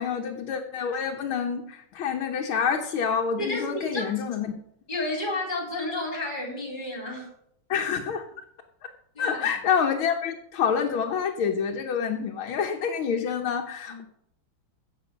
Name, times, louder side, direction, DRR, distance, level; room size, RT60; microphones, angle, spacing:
voice 1, 0.0-4.5 7.7-8.2 8.8-8.9 9.2-14.0, left 7 dB, 80° left, 1 dB, 1.8 m, -27 dB
voice 2, 3.4-4.0 4.9-7.3 9.1-9.4 13.9-14.0, left 2 dB, 20° left, 0 dB, 3.8 m, -31 dB
15.0 x 7.4 x 5.1 m, 0.74 s
omnidirectional pair, 2.2 m